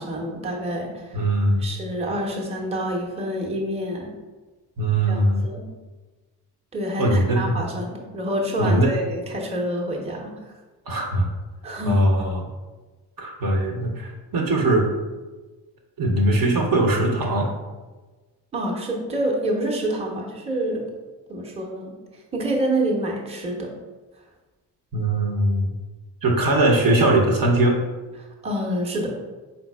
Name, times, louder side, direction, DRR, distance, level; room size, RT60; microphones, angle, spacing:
voice 1, 0.0-1.3 1.6-4.1 5.1-5.7 6.7-10.5 11.6-12.1 18.5-20.9 21.3-23.7 28.2-29.1, right 1 dB, 10° right, -1 dB, 0.8 m, -27 dB
voice 2, 1.1-1.6 4.8-5.4 7.0-7.6 8.6-8.9 10.9-11.3 11.8-12.4 13.2-14.8 16.0-17.5 24.9-25.7 26.2-27.8, right 1 dB, 45° right, 0 dB, 0.8 m, -20 dB
4.2 x 3.9 x 2.3 m, 1.3 s
hypercardioid pair, 45°, 50 cm